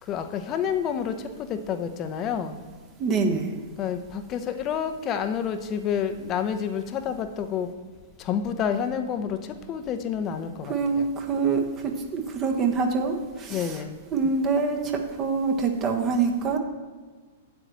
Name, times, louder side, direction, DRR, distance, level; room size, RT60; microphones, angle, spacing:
voice 1, 0.0-2.6 3.8-7.7 8.2-11.1 13.5-14.0, left 8 dB, 30° left, 8 dB, 0.8 m, -29 dB
voice 2, 3.0-3.5 10.7-13.8 14.1-16.6, right 4 dB, 30° right, 3 dB, 1.3 m, -25 dB
12.0 x 9.0 x 3.1 m, 1.4 s
figure-of-eight pair, 100°, 0 cm